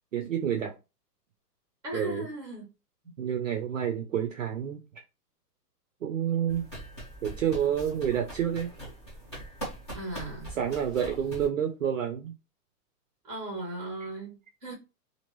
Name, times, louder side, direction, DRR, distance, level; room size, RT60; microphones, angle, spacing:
voice 1, 0.1-0.7 1.9-2.2 3.2-4.8 6.0-6.6 7.2-8.7 10.5-12.3, right 9 dB, 55° right, 0.5 m, -29 dB
voice 2, 1.8-2.7 3.0-3.1 9.9-10.5 13.2-14.7, right 1 dB, 5° right, 1.4 m, -37 dB
sound 1, 6.5-11.5, right 1 dB, 15° left, 0.7 m, -42 dB
2.9 x 2.6 x 3.0 m
hypercardioid pair, 180°, 49 cm